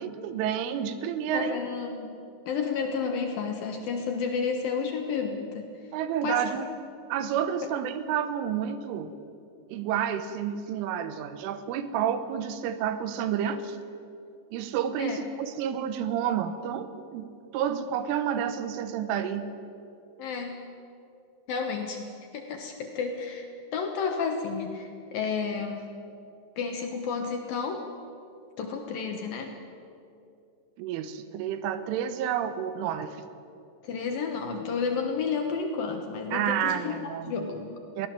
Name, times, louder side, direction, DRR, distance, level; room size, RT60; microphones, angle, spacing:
voice 1, 0.0-1.6 5.9-6.7 7.1-9.1 9.7-13.8 14.5-17.3 17.5-19.5 30.8-33.2 36.3-37.5 38.0-38.1, right 9 dB, 90° right, 11 dB, 3.6 m, -30 dB
voice 2, 1.3-2.2 2.5-5.7 6.2-6.5 15.0-15.2 20.2-20.6 21.5-25.8 26.6-27.8 28.6-29.5 33.8-37.8, left 5 dB, 65° left, 3 dB, 2.4 m, -31 dB
22.5 x 17.0 x 7.6 m, 2.6 s
omnidirectional pair, 5.5 m